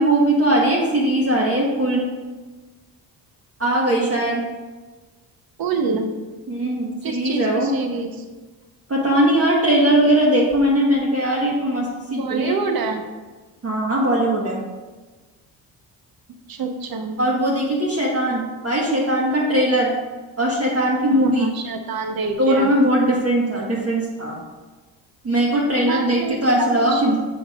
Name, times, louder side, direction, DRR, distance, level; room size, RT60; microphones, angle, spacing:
voice 1, 0.0-2.0 3.6-4.4 6.5-7.7 8.9-12.6 13.6-14.6 17.2-19.9 20.4-21.5 22.4-24.4 25.2-27.2, right 1 dB, 30° right, -4 dB, 1.3 m, -20 dB
voice 2, 5.6-6.1 7.0-8.2 12.2-13.0 16.5-17.2 21.2-22.7 25.9-27.0, right 4 dB, 45° right, 5 dB, 0.9 m, -26 dB
7.0 x 6.2 x 2.4 m, 1.3 s
hypercardioid pair, 55°, 49 cm